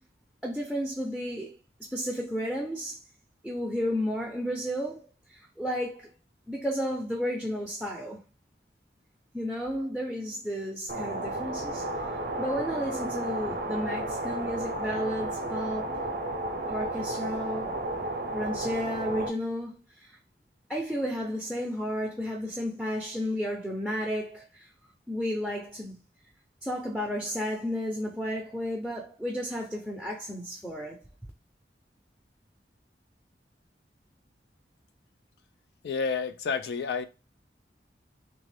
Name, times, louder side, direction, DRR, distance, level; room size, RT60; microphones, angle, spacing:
voice 1, 0.4-1.6 1.9-3.0 3.4-6.1 6.5-8.2 9.3-11.9 12.4-16.0 16.7-17.8 18.3-20.2 20.7-24.7 25.1-26.0 26.6-31.0, equal, ahead, 0.6 m, -32 dB
sound 1, 10.9-19.3, right 1 dB, 55° right, 0.6 m, -33 dB
voice 2, 35.8-37.0, left 5 dB, 70° left, 0.4 m, -30 dB
3.6 x 2.5 x 3.3 m
head